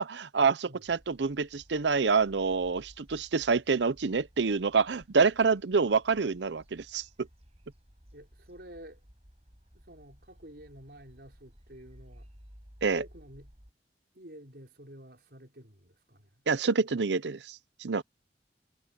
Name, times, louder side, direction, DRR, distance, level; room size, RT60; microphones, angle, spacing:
voice 1, 0.0-7.0 12.8-13.0 16.5-18.0, right 4 dB, 85° right, 0.7 m, -27 dB
sound 1, 0.9-13.7, equal, 35° right, 5.4 m, -57 dB
voice 2, 8.1-9.0 9.7-12.3 12.9-13.6 14.1-16.4, right 1 dB, 65° right, 5.2 m, -49 dB
head